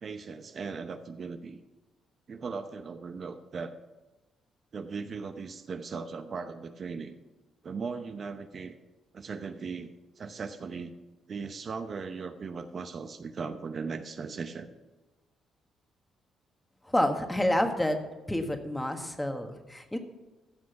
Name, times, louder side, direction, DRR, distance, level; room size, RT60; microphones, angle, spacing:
voice 1, 0.0-1.6 2.3-3.8 4.7-7.1 7.6-8.7 9.1-9.9 10.2-10.9 11.3-14.7, right 5 dB, 45° right, 8 dB, 0.8 m, -38 dB
voice 2, 16.9-18.0 18.3-20.0, left 1 dB, 10° left, 6 dB, 1.5 m, -28 dB
14.5 x 6.2 x 5.9 m, 1.1 s
cardioid pair, 90°, 0 cm